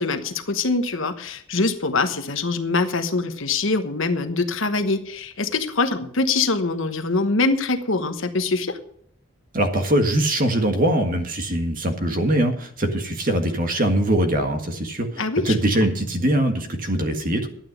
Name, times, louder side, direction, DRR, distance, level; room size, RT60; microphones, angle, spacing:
voice 1, 0.0-8.8 15.2-15.5, left 3 dB, 70° left, 9 dB, 1.2 m, -23 dB
voice 2, 9.5-17.5, right 1 dB, 40° right, 5 dB, 1.7 m, -22 dB
12.0 x 9.1 x 6.5 m, 0.65 s
head